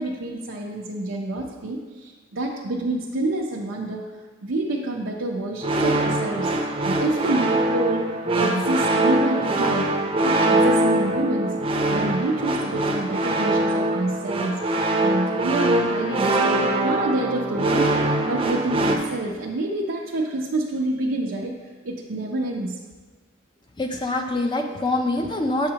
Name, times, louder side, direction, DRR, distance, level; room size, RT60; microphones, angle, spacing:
voice 1, 0.0-4.1 4.4-9.9 10.2-11.5 11.9-14.6 15.0-21.5 21.8-22.8, right 2 dB, 90° right, -3 dB, 0.6 m, -27 dB
sound 1, 5.6-19.0, right 1 dB, 30° right, 0.6 m, -22 dB
voice 2, 23.8-25.7, left 2 dB, 25° left, 3 dB, 0.4 m, -24 dB
7.7 x 6.5 x 2.9 m, 1.4 s
head